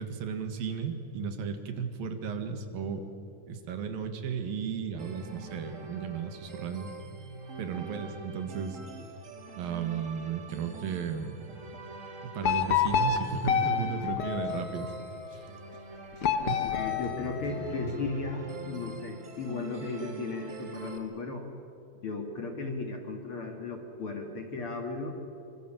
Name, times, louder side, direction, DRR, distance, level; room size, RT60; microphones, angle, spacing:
voice 1, 0.0-3.0 3.5-6.9 7.6-8.8 9.6-11.4 12.2-14.9 15.3-15.5 16.5-16.6, right 6 dB, 75° right, 7 dB, 3.4 m, -34 dB
sound 1, 5.0-21.0, right 3 dB, 30° right, 1.6 m, -44 dB
sound 2, 12.4-15.1 16.2-18.0, left 7 dB, 65° left, 1.4 m, -29 dB
voice 2, 16.6-21.5 22.0-25.2, left 3 dB, 45° left, 4 dB, 2.2 m, -36 dB
25.5 x 24.5 x 7.5 m, 2.8 s
omnidirectional pair, 4.2 m